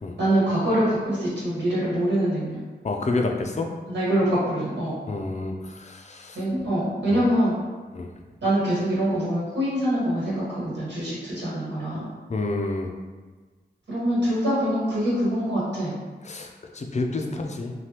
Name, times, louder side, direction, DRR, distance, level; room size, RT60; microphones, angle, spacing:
voice 1, 0.2-2.6 3.9-5.0 6.3-7.5 8.4-12.1 13.9-15.9 17.3-17.4, equal, 85° right, -9 dB, 1.4 m, -24 dB
voice 2, 2.8-3.7 5.1-6.4 7.1-7.2 7.9-8.1 12.3-12.9 16.2-17.7, left 2 dB, 40° left, 2 dB, 0.4 m, -29 dB
3.3 x 2.2 x 2.9 m, 1.3 s
wide cardioid pair, 65°, 18 cm